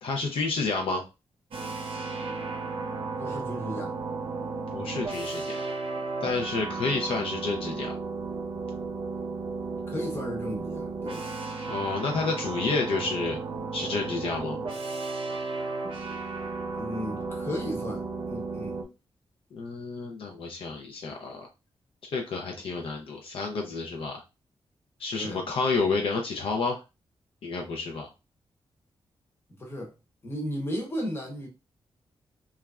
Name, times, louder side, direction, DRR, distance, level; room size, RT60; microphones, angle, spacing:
voice 1, 0.0-1.0 4.7-5.6 6.2-7.9 11.7-13.4 13.7-14.6 19.5-21.5 22.1-24.2 25.0-26.8 27.4-28.1, left 4 dB, 60° left, 0.5 m, -30 dB
sound 1, 1.5-18.8, right 4 dB, 60° right, 0.6 m, -34 dB
voice 2, 3.2-4.0 6.7-6.9 9.9-11.2 16.7-18.8 25.1-25.4 29.6-29.9 30.2-31.5, equal, 25° left, 0.8 m, -35 dB
3.0 x 2.3 x 2.3 m
wide cardioid pair, 180°, 10 cm